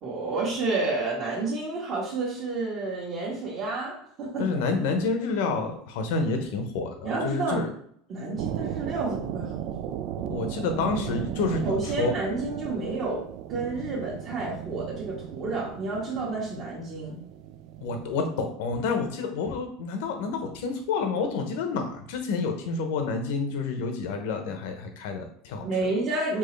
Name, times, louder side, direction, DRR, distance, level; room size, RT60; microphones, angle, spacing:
voice 1, 0.0-4.6 7.0-7.7 8.1-10.0 11.6-13.2 13.5-17.2 25.6-26.4, right 3 dB, 40° right, -7 dB, 1.3 m, -30 dB
voice 2, 4.4-7.7 10.3-12.1 17.8-25.6, left 4 dB, 75° left, 5 dB, 0.9 m, -29 dB
sound 1, 8.3-18.3, right 11 dB, 60° right, 0.3 m, -36 dB
4.6 x 2.9 x 3.2 m, 0.64 s
supercardioid pair, 125°, 0 cm